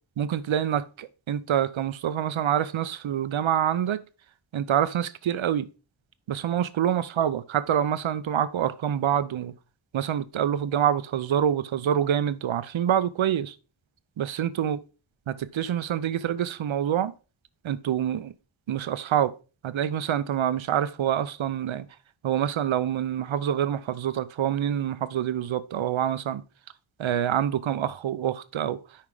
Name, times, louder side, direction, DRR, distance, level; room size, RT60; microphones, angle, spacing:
voice 1, 0.2-4.0 4.5-5.7 6.3-9.5 9.9-13.5 14.2-14.8 15.3-17.1 17.6-18.3 18.7-19.3 19.6-21.9 22.2-26.4 27.0-28.8, right 10 dB, 75° right, 0.6 m, -26 dB
5.7 x 4.7 x 4.7 m
cardioid pair, 50°, 47 cm